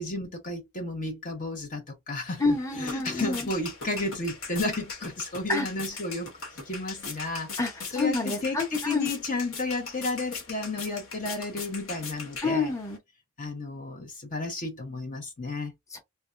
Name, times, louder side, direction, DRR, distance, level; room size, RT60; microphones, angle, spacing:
voice 1, 0.0-2.4 2.8-6.3 6.6-7.5 7.9-12.7 13.4-15.7, left 2 dB, 40° left, 0.9 m, -32 dB
sound 1, 2.3-13.0, left 4 dB, 70° left, 1.3 m, -40 dB
voice 2, 2.4-3.5 5.5-5.7 7.6-9.1 12.4-13.0 15.9-16.0, left 3 dB, 15° left, 0.9 m, -28 dB
3.4 x 2.3 x 2.5 m
head